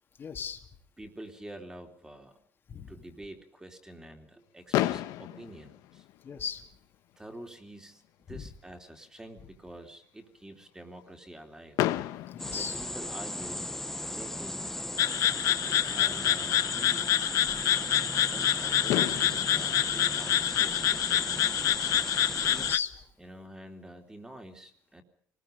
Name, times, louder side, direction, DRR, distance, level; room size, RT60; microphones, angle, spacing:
voice 1, 0.2-0.6 2.7-2.9 6.2-6.6 8.3-8.5 12.3-12.8 22.5-23.1, left 7 dB, 40° left, 4 dB, 2.5 m, -37 dB
voice 2, 1.0-2.4 2.9-6.1 7.2-8.0 8.3-11.8 12.5-13.7 14.1-14.8 15.9-17.0 18.3-22.0 23.2-25.0, right 1 dB, 10° right, 5 dB, 3.3 m, -47 dB
Fireworks, 4.7-6.7 7.6-7.7 7.8-8.1 8.4-8.5 11.8-13.6 15.3-15.4 18.4-18.5 18.9-21.2, left 15 dB, 85° left, 1.2 m, -33 dB
sound 1, 12.4-22.8, left 1 dB, 5° left, 1.0 m, -36 dB
sound 2, 15.0-22.8, left 12 dB, 60° left, 0.8 m, -27 dB
26.0 x 20.5 x 5.3 m, 0.64 s
cardioid pair, 130°, 6 cm